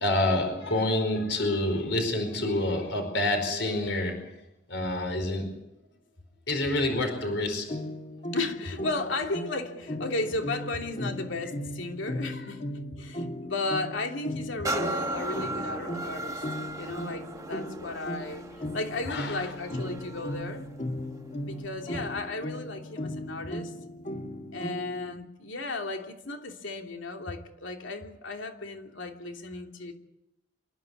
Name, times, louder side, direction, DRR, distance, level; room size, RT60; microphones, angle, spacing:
voice 1, 0.0-4.3 4.7-5.5 6.5-7.8 12.4-12.5 19.1-19.5, left 1 dB, 75° left, 5 dB, 4.8 m, -28 dB
sound 1, 7.7-25.1, left 1 dB, 40° left, 2.2 m, -37 dB
voice 2, 8.3-12.6 13.0-16.4 16.8-20.6 21.4-23.7 24.5-29.9, left 2 dB, 90° left, 3 dB, 3.0 m, -34 dB
sound 2, 14.6-22.2 22.8-22.9, right 2 dB, 20° right, 1.2 m, -37 dB
27.5 x 12.0 x 9.6 m, 0.89 s
head